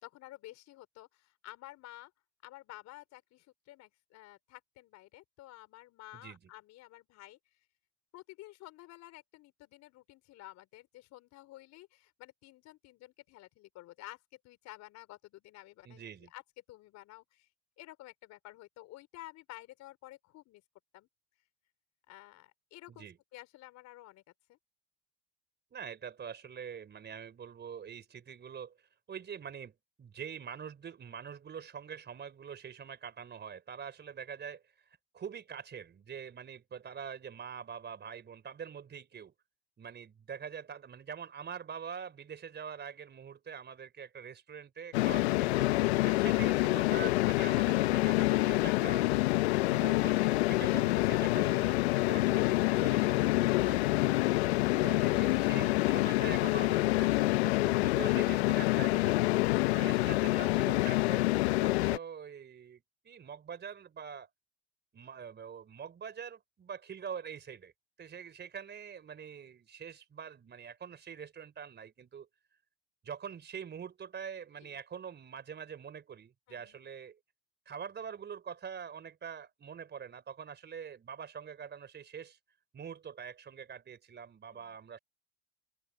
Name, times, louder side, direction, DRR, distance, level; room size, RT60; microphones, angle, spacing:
voice 1, 0.0-2.1 2.4-7.4 8.1-14.2 14.4-16.0 16.3-16.4 16.7-17.5 17.8-20.6 20.9-21.1 22.1-23.1 23.3-24.2 24.5-24.6 74.6-74.8 76.5-76.8 84.5-84.8, left 17 dB, 55° left, 4.4 m, -52 dB
voice 2, 6.1-6.5 15.8-16.3 22.9-23.2 25.7-28.8 29.1-39.3 39.8-45.7 46.0-49.1 49.7-54.3 54.8-59.4 59.7-64.3 64.9-67.7 68.0-72.3 73.0-77.2 77.7-82.4 82.7-85.0, right 7 dB, 35° right, 4.2 m, -45 dB
sound 1, 44.9-62.0, left 19 dB, 80° left, 1.0 m, -27 dB
open air
hypercardioid pair, 85°, 32 cm